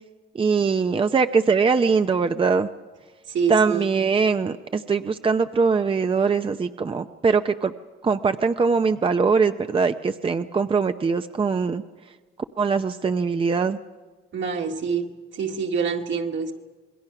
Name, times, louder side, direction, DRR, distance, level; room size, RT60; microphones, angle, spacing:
voice 1, 0.3-2.7 3.5-7.7 8.0-11.8 12.6-13.8, right 5 dB, 25° right, 8 dB, 0.6 m, -22 dB
voice 2, 3.3-3.8 14.3-16.5, right 6 dB, 70° right, 2 dB, 2.1 m, -26 dB
27.0 x 21.0 x 5.9 m, 1.4 s
cardioid pair, 90°, 20 cm